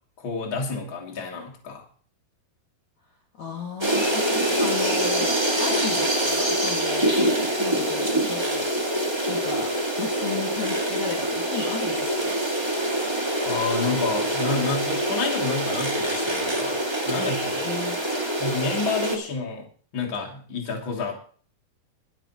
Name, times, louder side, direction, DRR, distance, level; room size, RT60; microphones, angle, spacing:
voice 1, 0.2-1.8 13.5-16.8 17.1-17.6 18.4-19.7 19.9-21.2, left 4 dB, 35° left, 1 dB, 3.2 m, -29 dB
voice 2, 3.4-5.3 5.6-8.6 9.3-9.7 10.0-12.3 17.6-18.0, left 5 dB, 50° left, -1 dB, 3.1 m, -34 dB
sound 1, 3.8-19.2, right 1 dB, 10° right, 1.2 m, -25 dB
21.5 x 10.5 x 3.1 m, 0.43 s
omnidirectional pair, 4.6 m